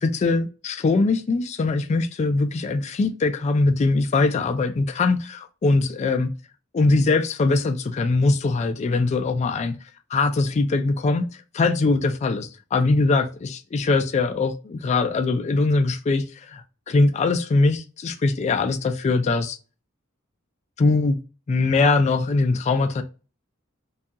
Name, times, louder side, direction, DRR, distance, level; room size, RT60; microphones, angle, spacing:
voice 1, 0.0-6.3 6.7-9.7 10.1-11.3 11.5-19.6 20.8-21.2 21.5-23.0, left 3 dB, 35° left, 0.3 m, -22 dB
2.7 x 2.3 x 2.5 m
head